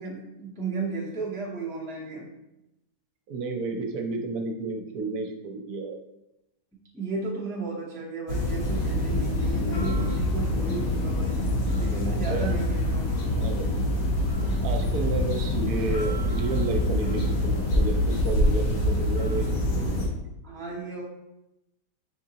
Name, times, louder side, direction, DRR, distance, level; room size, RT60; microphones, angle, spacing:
voice 1, 0.0-2.3 6.9-11.4 11.8-13.4 20.4-21.0, right 4 dB, 5° left, -4 dB, 0.4 m, -34 dB
voice 2, 3.3-6.0 12.2-12.5 13.3-13.7 14.6-19.5 19.7-20.1, right 3 dB, 75° right, 3 dB, 1.1 m, -31 dB
sound 1, 8.3-20.1, left 1 dB, 65° left, 1.3 m, -25 dB
5.0 x 3.7 x 2.8 m, 0.89 s
omnidirectional pair, 1.7 m